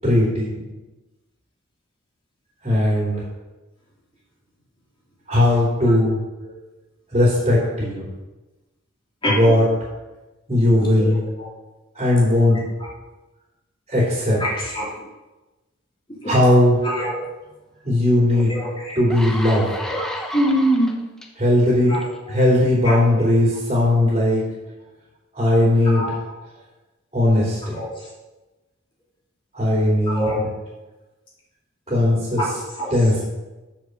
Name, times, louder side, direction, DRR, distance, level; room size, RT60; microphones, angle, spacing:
voice 1, 0.0-0.6 2.6-3.1 5.3-6.2 7.1-8.1 9.3-9.6 10.5-11.2 11.9-12.6 13.9-14.4 16.2-16.8 17.8-18.5 18.9-19.7 21.4-21.9 22.3-24.5 25.3-26.1 27.1-27.8 29.5-30.4 31.9-32.4 32.9-33.2, left 1 dB, 30° right, -7 dB, 3.4 m, -18 dB
voice 2, 9.2-9.5 10.7-11.1 11.4-11.5 14.4-14.9 16.1-16.3 16.8-17.3 18.3-19.0 19.4-20.9 21.9-22.4 22.8-23.0 25.8-26.1 27.7-28.1 30.1-30.5 32.4-32.9, equal, 25° left, -5 dB, 3.3 m, -25 dB
sound 1, 18.3-18.4 18.9-21.3 21.9-22.2, left 1 dB, 5° left, 0.9 m, -32 dB
7.3 x 7.2 x 6.9 m, 1.1 s
head